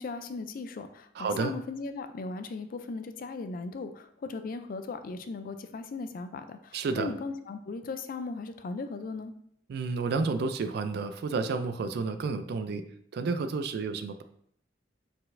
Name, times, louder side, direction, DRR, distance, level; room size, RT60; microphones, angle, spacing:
voice 1, 0.0-9.3, left 3 dB, 50° left, 9 dB, 0.4 m, -37 dB
voice 2, 1.2-1.5 6.7-7.1 9.7-12.8 13.1-14.2, right 4 dB, 60° right, 10 dB, 0.3 m, -30 dB
4.4 x 4.0 x 2.5 m, 0.68 s
head